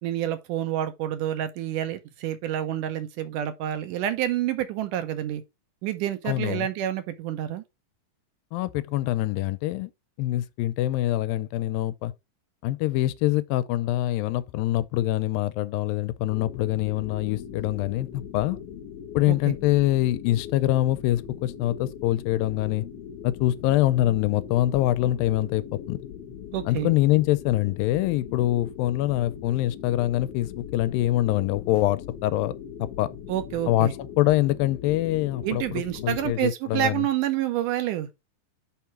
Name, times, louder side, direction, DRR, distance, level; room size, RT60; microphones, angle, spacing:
voice 1, 0.0-5.4 5.8-7.6 19.3-19.4 26.5-26.9 33.3-33.9 35.4-38.1, right 12 dB, 75° right, 2.2 m, -28 dB
voice 2, 6.3-6.7 8.5-9.9 10.2-12.1 12.6-18.6 19.1-22.9 23.2-26.0 26.7-32.5 32.8-33.1 33.7-33.9 34.2-37.1, left 15 dB, 90° left, 2.3 m, -24 dB
sound 1, 16.3-36.3, left 8 dB, 70° left, 1.5 m, -40 dB
5.7 x 4.7 x 5.8 m
omnidirectional pair, 4.0 m